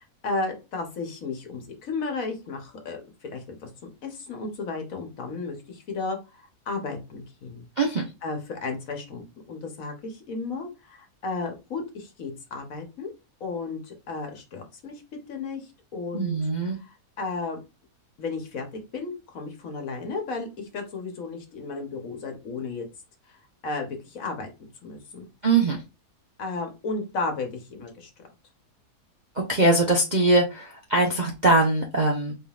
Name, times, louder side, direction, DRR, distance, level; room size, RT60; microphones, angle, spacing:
voice 1, 0.0-3.7 4.0-7.7 8.2-13.1 13.4-15.0 15.3-16.4 16.8-17.6 18.2-22.8 23.3-23.4 23.6-24.5 24.8-25.2 26.4-28.1, left 3 dB, 60° left, 4 dB, 1.4 m, -34 dB
voice 2, 16.1-16.8 25.4-25.8 29.3-32.3, right 2 dB, 45° right, 0 dB, 0.6 m, -22 dB
4.4 x 3.7 x 2.4 m, 0.27 s
omnidirectional pair, 1.7 m